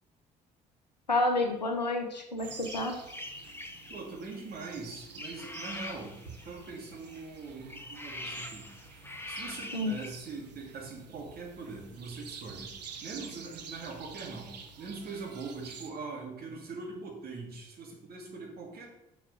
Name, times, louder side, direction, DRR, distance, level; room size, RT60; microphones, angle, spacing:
voice 1, 1.1-3.0 9.7-10.0, left 2 dB, 85° left, 4 dB, 0.8 m, -29 dB
sound 1, 2.4-15.9, right 5 dB, 80° right, 0.7 m, -49 dB
sound 2, 2.6-10.1, left 2 dB, 10° left, 1.1 m, -44 dB
voice 2, 3.9-6.2 6.4-8.7 9.3-12.7 13.0-18.9, right 4 dB, 45° right, -1 dB, 2.3 m, -42 dB
6.5 x 5.9 x 5.3 m, 0.91 s
figure-of-eight pair, 45°, 21 cm